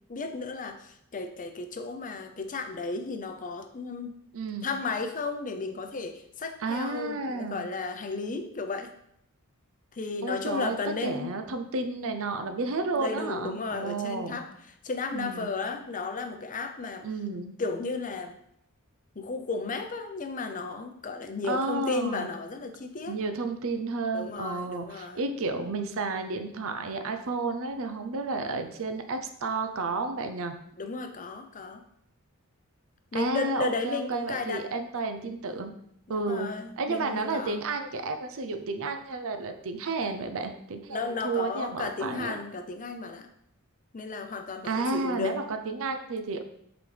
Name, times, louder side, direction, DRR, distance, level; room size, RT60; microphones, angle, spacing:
voice 1, 0.1-4.1 4.6-8.9 9.9-11.3 13.0-14.5 14.8-17.1 17.6-18.4 19.2-23.2 24.1-25.2 30.8-31.8 33.1-34.6 36.1-37.6 40.9-43.3 43.9-45.3, left 4 dB, 35° left, 7 dB, 0.6 m, -34 dB
voice 2, 4.3-4.7 6.6-7.7 10.2-14.4 15.1-15.5 17.0-17.6 21.4-22.3 23.1-30.5 33.1-35.7 36.1-36.5 36.8-42.4 44.6-46.4, right 3 dB, 65° right, 7 dB, 0.6 m, -31 dB
7.6 x 4.1 x 3.4 m, 0.73 s
head